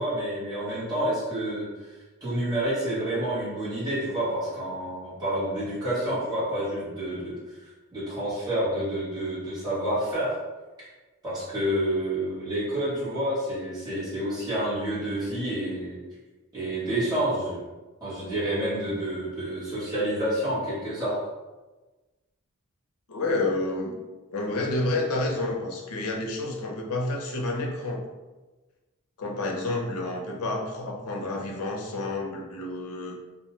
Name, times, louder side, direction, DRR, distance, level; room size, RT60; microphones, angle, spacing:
voice 1, 0.0-7.3 7.6-10.4 11.2-16.0 16.5-17.6 18.0-21.2, right 1 dB, 20° right, -11 dB, 1.1 m, -29 dB
voice 2, 23.1-23.9 24.3-28.0 29.2-33.1, left 2 dB, 90° left, 0 dB, 0.6 m, -29 dB
2.6 x 2.1 x 3.0 m, 1.2 s
head